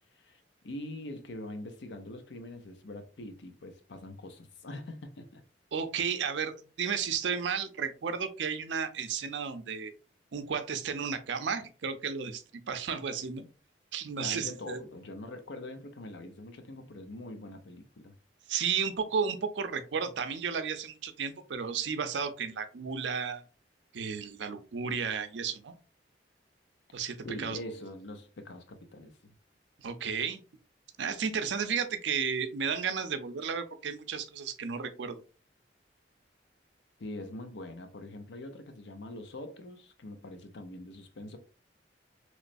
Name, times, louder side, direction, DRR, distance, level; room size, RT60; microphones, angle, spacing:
voice 1, 0.1-5.4 14.2-18.1 27.2-29.3 37.0-41.4, left 1 dB, 80° left, 0.6 m, -43 dB
voice 2, 5.7-9.9 10.3-13.4 13.9-14.8 18.5-23.4 23.9-25.7 26.9-27.6 29.8-30.4 31.0-35.2, right 6 dB, 85° right, 0.5 m, -33 dB
3.1 x 3.0 x 2.5 m
head